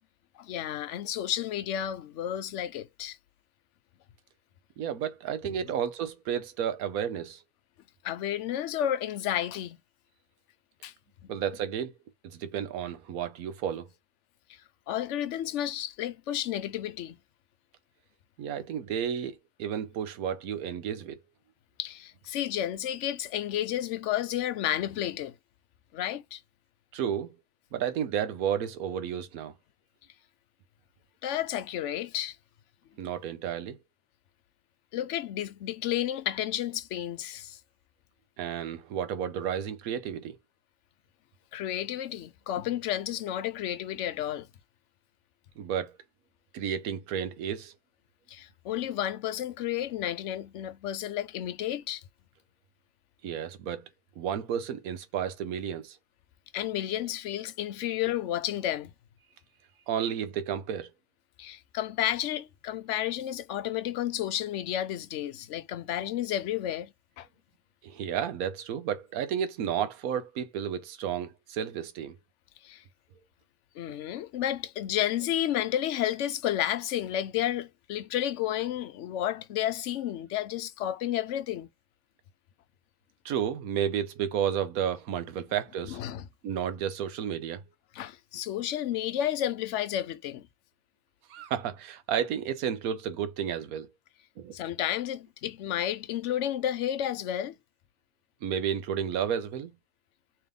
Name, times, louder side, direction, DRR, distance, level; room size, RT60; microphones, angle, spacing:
voice 1, 0.4-3.2 8.0-9.8 10.8-10.9 11.2-11.3 14.9-17.2 21.8-25.3 25.9-26.4 31.2-32.4 34.9-37.6 41.5-44.5 48.3-52.0 56.5-58.9 61.4-67.3 72.6-72.8 73.8-81.7 85.8-86.3 87.9-90.5 94.5-97.5, left 11 dB, 65° left, 0.8 m, -31 dB
voice 2, 4.8-7.4 11.3-11.9 12.2-13.9 18.4-21.2 26.9-27.4 27.7-29.5 33.0-33.8 38.4-40.4 45.6-45.9 46.5-47.7 53.2-53.8 54.2-56.0 59.9-60.9 67.8-72.2 83.2-86.0 86.4-87.6 91.3-93.9 94.4-94.5 98.4-99.7, right 8 dB, 85° right, 1.2 m, -32 dB
3.4 x 3.2 x 3.6 m
omnidirectional pair, 1.5 m